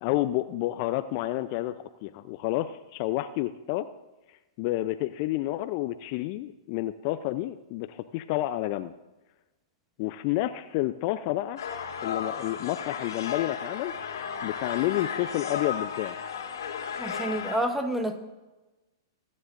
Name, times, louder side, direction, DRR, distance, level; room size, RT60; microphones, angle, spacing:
voice 1, 0.0-1.8 2.0-3.9 4.6-8.9 10.0-11.6 12.0-13.9 14.4-16.1, left 15 dB, 45° left, 11 dB, 0.5 m, -29 dB
sound 1, 11.6-17.6, left 7 dB, 70° left, 2.1 m, -34 dB
voice 2, 17.0-18.2, right 1 dB, 5° right, 6 dB, 1.3 m, -29 dB
24.0 x 9.6 x 2.6 m, 1.1 s
hypercardioid pair, 110°, 2 cm